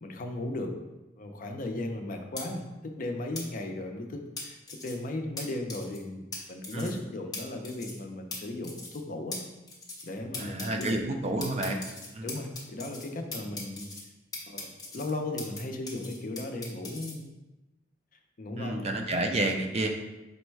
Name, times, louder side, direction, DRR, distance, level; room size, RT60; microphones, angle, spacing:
voice 1, 0.0-0.7 1.2-6.2 6.5-9.4 10.0-11.0 12.2-13.9 14.5-14.7 14.9-17.3 18.4-18.8, left 2 dB, 45° left, 4 dB, 0.5 m, -36 dB
sound 1, 2.4-2.5 3.3-3.4 4.4-4.9 5.4-5.5 5.7-6.0 6.3-6.4 6.6-7.0 7.3-7.4 7.6-8.0 8.3-8.4 8.6-9.0 9.3-9.4 9.7-10.1 10.3-10.9 11.4-13.1 13.3-14.0 14.3-15.6 15.9-17.1, left 3 dB, 20° left, 0.9 m, -39 dB
voice 2, 10.4-11.8 12.1-12.3 18.6-19.9, right 2 dB, 35° right, 3 dB, 0.4 m, -30 dB
5.2 x 2.1 x 4.5 m, 1.0 s
head